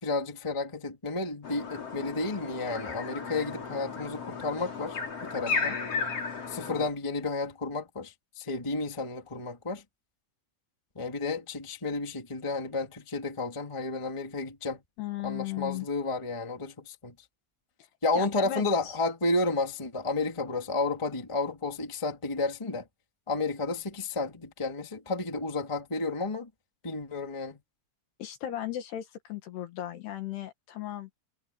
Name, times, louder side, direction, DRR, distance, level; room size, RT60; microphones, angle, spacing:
voice 1, 0.0-5.8 6.5-9.8 10.9-14.8 15.2-17.1 18.0-22.9 23.3-26.5 26.8-27.6, left 3 dB, 10° left, 1.7 m, -32 dB
sound 1, 1.4-6.9, left 5 dB, 35° left, 4.5 m, -34 dB
voice 2, 15.0-15.9 18.2-18.9 28.2-31.1, left 12 dB, 65° left, 3.4 m, -36 dB
omnidirectional pair, 5.5 m